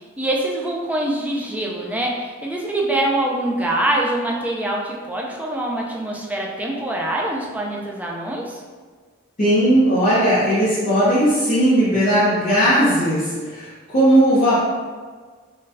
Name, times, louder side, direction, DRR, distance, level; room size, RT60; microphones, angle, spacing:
voice 1, 0.0-8.6, right 1 dB, 5° right, -2 dB, 0.3 m, -24 dB
voice 2, 9.4-14.6, right 1 dB, 35° left, -12 dB, 0.8 m, -17 dB
3.9 x 2.2 x 2.6 m, 1.5 s
head